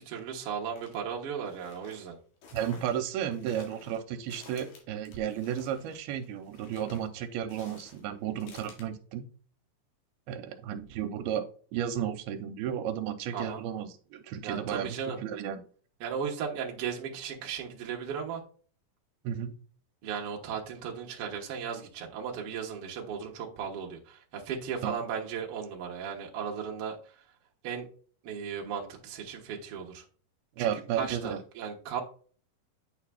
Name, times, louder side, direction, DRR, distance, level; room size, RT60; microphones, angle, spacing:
voice 1, 0.0-2.2 13.3-13.6 14.4-15.2 16.0-18.4 20.0-27.2 27.6-27.9 28.2-30.0 30.6-32.0, right 7 dB, 60° right, 0 dB, 1.5 m, -36 dB
sound 1, 0.8-1.0 1.5-8.8, left 4 dB, 80° left, 3.5 m, -53 dB
voice 2, 2.5-9.3 10.3-11.4 11.7-14.9 15.2-15.6 19.2-19.6 24.8-25.0 30.6-31.4, right 9 dB, 85° right, 8 dB, 2.5 m, -33 dB
9.1 x 4.8 x 2.3 m, 0.42 s
omnidirectional pair, 4.4 m